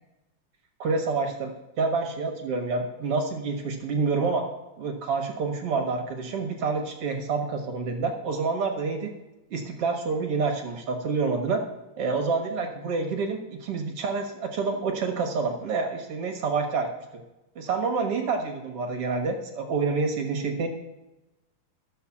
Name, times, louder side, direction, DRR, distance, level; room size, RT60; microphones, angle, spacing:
voice 1, 0.8-4.5 4.8-9.1 9.5-11.6 12.0-16.9 17.6-20.7, right 4 dB, 55° right, 3 dB, 1.9 m, -28 dB
12.5 x 6.9 x 7.1 m, 0.99 s
omnidirectional pair, 3.9 m